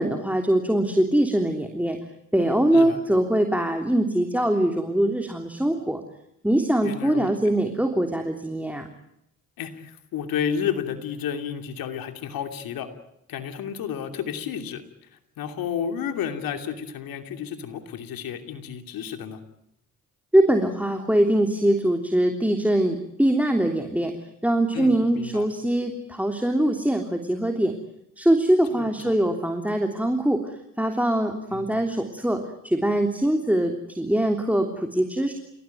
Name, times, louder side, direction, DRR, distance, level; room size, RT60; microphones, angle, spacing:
voice 1, 0.0-2.0 2.3-6.0 6.4-8.9 20.3-24.1 24.4-27.7 28.2-35.3, right 1 dB, 5° right, 4 dB, 3.3 m, -22 dB
voice 2, 6.8-7.3 9.6-12.9 13.3-14.8 15.1-19.4 24.7-25.5 28.7-29.2 31.5-31.7, left 8 dB, 80° left, 7 dB, 2.9 m, -31 dB
29.5 x 18.0 x 9.3 m, 0.80 s
hypercardioid pair, 45°, 35 cm